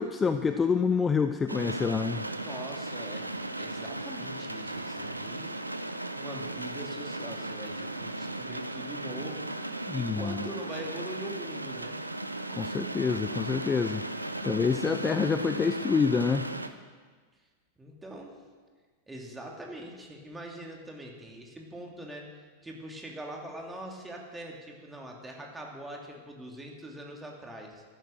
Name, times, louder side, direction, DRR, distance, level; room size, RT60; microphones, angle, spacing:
voice 1, 0.0-2.2 9.9-10.5 12.5-14.0 14.4-16.5, left 5 dB, 15° left, 9 dB, 0.5 m, -27 dB
sound 1, 1.5-16.7, right 2 dB, 85° right, 0.8 m, -36 dB
voice 2, 2.4-5.6 6.1-9.5 9.9-12.0 17.8-18.3 19.1-22.2 22.6-27.8, right 1 dB, 10° right, 0 dB, 2.7 m, -43 dB
13.5 x 11.5 x 6.5 m, 1.5 s
figure-of-eight pair, 90°, 0 cm